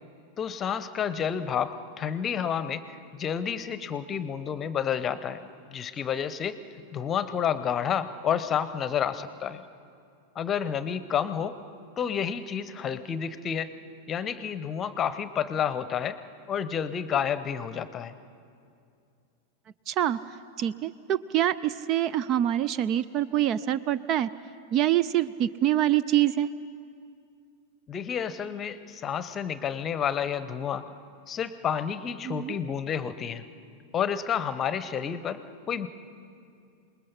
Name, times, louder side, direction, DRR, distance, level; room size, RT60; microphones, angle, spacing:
voice 1, 0.4-6.6 6.9-9.7 10.3-11.6 12.0-13.7 14.1-16.2 16.5-18.1 27.9-30.8 31.3-33.4 33.9-35.4 35.7-35.9, left 8 dB, 25° left, 14 dB, 0.9 m, -30 dB
voice 2, 19.9-20.2 20.6-24.3 24.7-26.5 32.3-32.6, right 12 dB, 35° right, 16 dB, 0.4 m, -25 dB
27.0 x 20.5 x 5.8 m, 2.4 s
figure-of-eight pair, 90°, 0 cm